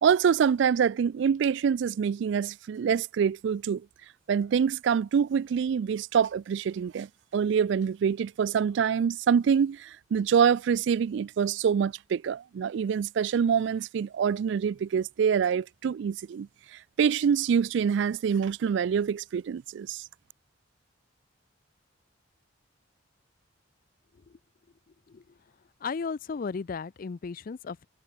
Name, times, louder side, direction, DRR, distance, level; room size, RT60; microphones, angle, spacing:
voice 1, 0.0-3.8 4.3-7.1 7.3-16.5 17.0-20.0, right 7 dB, 60° right, 0.3 m, -25 dB
voice 2, 25.8-27.8, left 5 dB, 45° left, 0.4 m, -35 dB
head